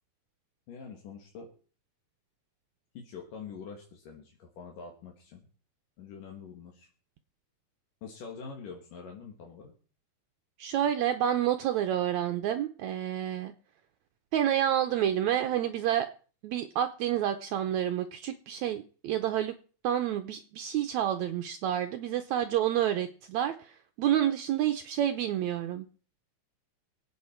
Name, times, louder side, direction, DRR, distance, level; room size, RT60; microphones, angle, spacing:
voice 1, 0.7-1.5 3.0-5.4 6.0-6.9 8.0-9.7, left 5 dB, 80° left, 1 dB, 3.6 m, -45 dB
voice 2, 10.6-13.5 14.3-16.1 16.4-19.5 19.8-25.9, right 11 dB, 70° right, 8 dB, 1.9 m, -29 dB
23.5 x 8.8 x 4.4 m, 0.41 s
omnidirectional pair, 3.7 m